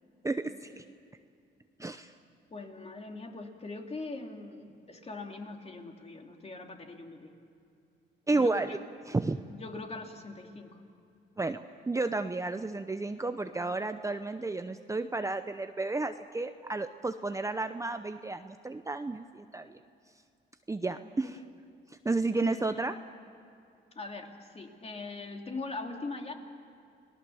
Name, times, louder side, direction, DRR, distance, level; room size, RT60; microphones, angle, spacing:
voice 1, 0.2-0.8 1.8-2.1 8.3-8.8 9.1-9.4 11.4-19.8 20.7-21.4 22.0-22.9, right 3 dB, 15° right, 8 dB, 0.7 m, -32 dB
voice 2, 2.5-7.3 8.3-8.8 9.5-10.8 21.2-21.3 22.3-22.7 23.9-26.3, left 3 dB, 30° left, 3 dB, 2.8 m, -42 dB
29.5 x 19.0 x 7.1 m, 2.5 s
cardioid pair, 90°, 20 cm